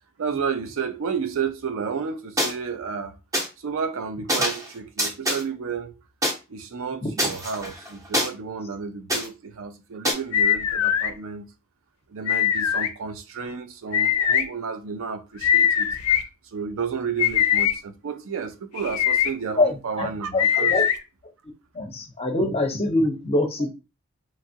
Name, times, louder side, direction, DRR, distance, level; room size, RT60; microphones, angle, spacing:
voice 1, 0.2-3.2 3.6-5.9 6.5-11.5 12.1-20.8, right 6 dB, 60° right, 0.4 m, -31 dB
sound 1, 2.4-2.5 3.3-3.5 4.3-4.7 5.0-5.4 6.2-6.3 7.2-8.3 9.1-9.3 10.0-10.1, equal, 15° right, 0.7 m, -24 dB
sound 2, 10.3-11.1 12.3-12.9 13.9-14.4 15.4-16.2 17.2-17.7 18.8-19.3 20.4-21.0, left 9 dB, 80° left, 0.4 m, -21 dB
voice 2, 19.6-20.8 21.7-23.7, left 2 dB, 25° left, 0.6 m, -24 dB
2.9 x 2.3 x 2.7 m
head